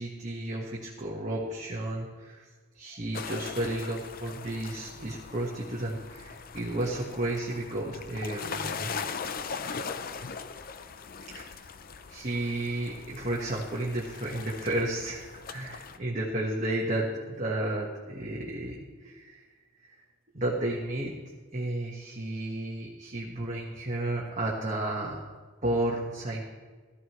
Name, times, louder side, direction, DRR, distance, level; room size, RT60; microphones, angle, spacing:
voice 1, 0.0-2.4 2.7-8.9 11.3-11.5 12.1-19.4 20.3-21.1 21.5-25.1 25.6-26.4, right 1 dB, 35° right, -4 dB, 1.5 m, -32 dB
sound 1, 3.1-16.0, left 5 dB, 45° left, 0.6 m, -40 dB
15.5 x 13.0 x 3.1 m, 1.4 s
head